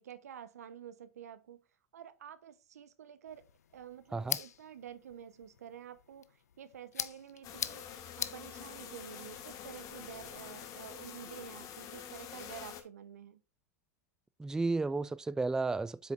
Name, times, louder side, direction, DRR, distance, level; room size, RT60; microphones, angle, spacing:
voice 1, 0.0-1.6 1.9-3.4 3.7-7.8 8.2-13.4, right 9 dB, 85° right, 0.9 m, -49 dB
sound 1, 3.2-11.2, left 9 dB, 85° left, 0.5 m, -44 dB
sound 2, 7.4-12.8, left 8 dB, 45° left, 1.7 m, -47 dB
voice 2, 14.4-16.1, right 3 dB, 5° right, 0.3 m, -33 dB
8.2 x 6.5 x 2.5 m
hypercardioid pair, 100°, 8 cm